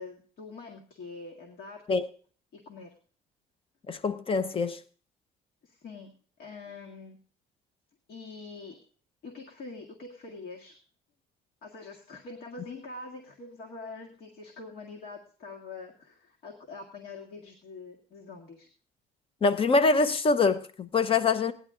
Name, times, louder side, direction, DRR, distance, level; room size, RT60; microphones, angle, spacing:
voice 1, 0.0-1.8 2.5-2.9 5.6-6.1 6.4-7.2 8.1-8.8 9.2-10.8 11.6-18.7, left 3 dB, 65° left, 1.9 m, -44 dB
voice 2, 3.9-4.8 19.4-21.5, left 4 dB, 35° left, 0.8 m, -24 dB
16.0 x 10.5 x 3.8 m
cardioid pair, 110°, 17 cm